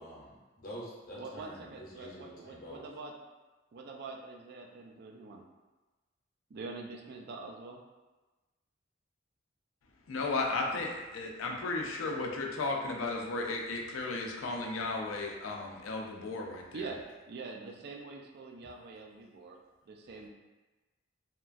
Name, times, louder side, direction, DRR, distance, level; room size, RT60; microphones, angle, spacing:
voice 1, 0.0-2.8, equal, 45° left, -5 dB, 0.7 m, -47 dB
voice 2, 1.2-3.1 3.7-5.4 6.5-7.8 16.7-19.6 19.9-20.3, right 3 dB, 55° right, 1 dB, 0.3 m, -44 dB
voice 3, 10.1-16.6, left 3 dB, 90° left, 0 dB, 0.4 m, -34 dB
2.9 x 2.3 x 2.4 m, 1.2 s
head